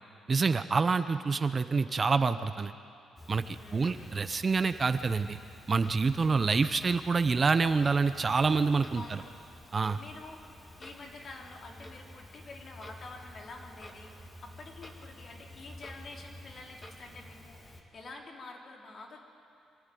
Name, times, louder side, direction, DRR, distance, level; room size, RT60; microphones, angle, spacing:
voice 1, 0.3-2.7 3.3-5.4 5.7-9.2 9.7-10.0, right 4 dB, 35° right, 11 dB, 0.7 m, -27 dB
Clock, 3.2-17.8, left 1 dB, 25° left, 2.5 m, -50 dB
voice 2, 3.6-4.2 8.9-9.3 9.9-19.2, left 3 dB, 50° left, 0 dB, 3.2 m, -48 dB
25.0 x 13.0 x 9.2 m, 2.5 s
cardioid pair, 90°, 0 cm